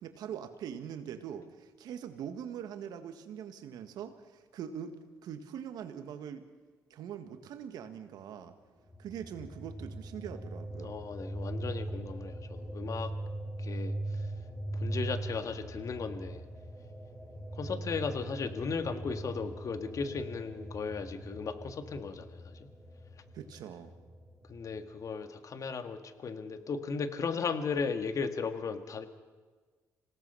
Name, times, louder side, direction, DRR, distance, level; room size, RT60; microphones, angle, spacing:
voice 1, 0.0-5.0 5.2-6.4 6.9-8.5 9.0-11.0 23.3-23.9, right 8 dB, 70° right, 8 dB, 1.7 m, -42 dB
sound 1, 8.8-25.0, right 1 dB, 5° left, 6.6 m, -41 dB
voice 2, 10.8-13.1 13.6-14.3 14.7-16.4 17.5-22.7 24.5-29.1, left 5 dB, 55° left, 8 dB, 1.8 m, -36 dB
26.5 x 17.5 x 5.7 m, 1.4 s
hypercardioid pair, 55°, 7 cm